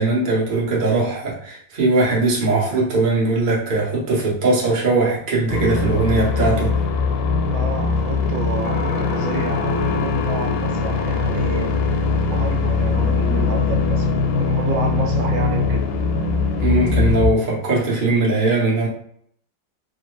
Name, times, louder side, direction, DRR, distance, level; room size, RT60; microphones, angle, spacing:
voice 1, 0.0-6.7 16.6-18.9, right 2 dB, 40° right, -4 dB, 0.7 m, -20 dB
sound 1, 5.5-17.3, left 4 dB, 90° left, 1.4 m, -21 dB
voice 2, 7.5-11.7 12.3-15.9, right 4 dB, 85° right, 2 dB, 1.3 m, -30 dB
sound 2, 8.6-12.1, left 4 dB, 70° left, 0.9 m, -36 dB
3.1 x 2.1 x 3.0 m, 0.64 s
omnidirectional pair, 2.1 m